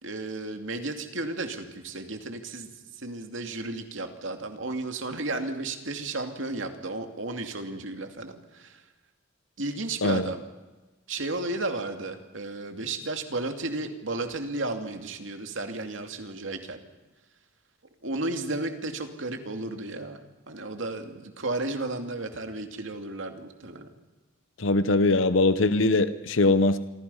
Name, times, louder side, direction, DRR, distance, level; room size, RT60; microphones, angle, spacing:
voice 1, 0.0-2.7 2.9-8.8 9.6-10.4 11.1-16.8 18.0-20.2 20.5-23.9, right 2 dB, 70° right, 5 dB, 2.7 m, -33 dB
voice 2, 24.6-26.8, left 2 dB, 70° left, 12 dB, 0.9 m, -21 dB
27.5 x 24.5 x 5.7 m, 1.2 s
head